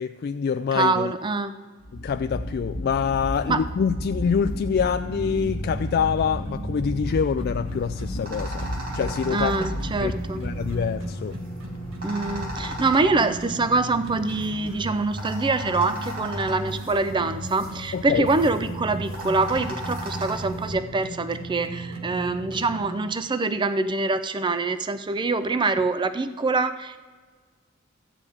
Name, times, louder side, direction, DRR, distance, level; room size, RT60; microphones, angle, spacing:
voice 1, 0.0-1.1 1.9-8.7 8.9-9.5 10.0-11.4 17.9-18.3, left 6 dB, 50° left, 8 dB, 0.3 m, -26 dB
voice 2, 0.7-1.5 3.5-3.6 9.3-10.4 12.0-27.0, right 3 dB, 25° right, 11 dB, 0.4 m, -25 dB
sound 1, 1.8-10.9, equal, 85° left, 1.7 m, -33 dB
sound 2, 5.0-22.8, right 2 dB, 80° right, 1.6 m, -37 dB
sound 3, 7.6-20.7, equal, 45° right, 2.7 m, -37 dB
13.5 x 5.0 x 8.5 m, 1.5 s
head